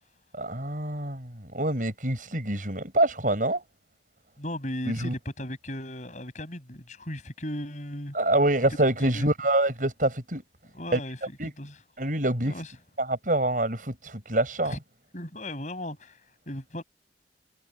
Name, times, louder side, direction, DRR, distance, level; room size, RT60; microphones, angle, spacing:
voice 1, 0.3-3.6 4.9-5.1 8.1-10.4 10.9-11.0 11.4-11.5 12.0-12.5 13.0-14.8, right 1 dB, 45° right, 7.7 m, -26 dB
voice 2, 4.4-8.2 8.8-9.3 10.7-11.2 11.6-11.8 12.4-12.7 14.6-14.8 15.1-16.2 16.5-16.8, left 1 dB, 40° left, 7.5 m, -36 dB
head